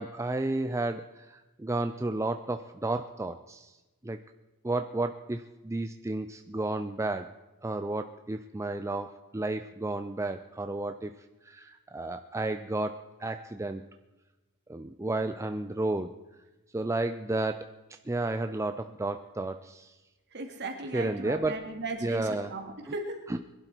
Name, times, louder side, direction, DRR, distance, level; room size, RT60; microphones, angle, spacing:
voice 1, 0.0-3.7 4.0-4.2 4.6-7.3 7.6-11.1 11.4-13.8 14.7-16.1 16.7-17.7 18.1-19.9 20.9-21.6 22.0-22.5 22.9-23.0 23.3-23.4, right 2 dB, 15° right, 8 dB, 0.5 m, -32 dB
voice 2, 20.3-23.2, right 2 dB, 50° right, 4 dB, 2.4 m, -37 dB
21.5 x 12.0 x 4.5 m, 1.1 s
head